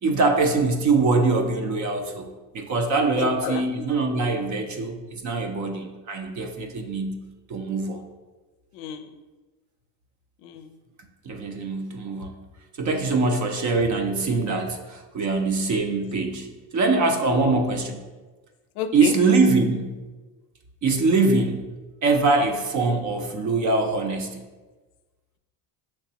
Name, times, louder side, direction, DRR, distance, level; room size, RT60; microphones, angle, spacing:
voice 1, 0.0-2.3 2.5-7.2 7.5-8.0 11.3-12.4 12.8-16.5 16.7-18.0 18.9-19.9 20.8-21.7 22.0-24.4, right 3 dB, 35° right, 4 dB, 0.6 m, -23 dB
voice 2, 3.1-3.9 8.7-9.1 10.4-10.8 17.3-17.7 18.8-19.2, left 8 dB, 70° left, 9 dB, 0.5 m, -31 dB
5.7 x 3.3 x 2.8 m, 1.3 s
supercardioid pair, 85°, 49 cm